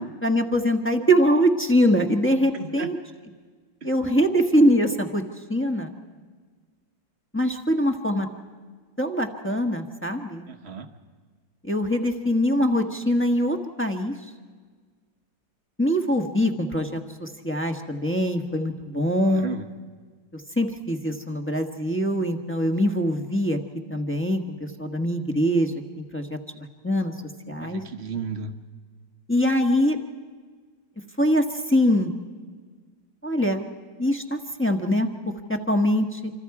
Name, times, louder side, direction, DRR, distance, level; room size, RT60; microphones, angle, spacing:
voice 1, 0.2-3.0 3.8-5.2 5.5-6.0 7.3-8.3 9.0-10.5 11.6-14.1 15.8-19.5 20.3-23.6 23.9-27.1 27.5-27.8 29.3-30.0 31.2-32.1 33.2-33.6 34.0-35.1 35.5-36.3, equal, 10° left, 2 dB, 1.0 m, -23 dB
voice 2, 2.5-2.9 10.5-10.9 19.2-19.6 27.6-28.5, right 5 dB, 40° right, 7 dB, 1.2 m, -34 dB
27.0 x 26.0 x 4.8 m, 1.5 s
omnidirectional pair, 2.1 m